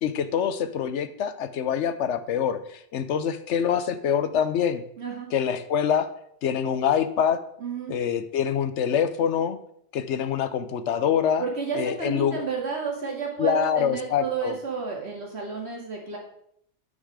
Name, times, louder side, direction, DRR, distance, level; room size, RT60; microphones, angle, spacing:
voice 1, 0.0-4.8 5.3-6.1 6.4-7.4 7.9-9.6 9.9-11.4 11.8-12.4 13.4-14.5, left 8 dB, 80° left, 12 dB, 1.0 m, -25 dB
voice 2, 5.0-5.3 7.6-7.9 11.4-16.2, right 5 dB, 65° right, -1 dB, 2.5 m, -31 dB
10.0 x 5.7 x 4.8 m, 0.69 s
omnidirectional pair, 1.2 m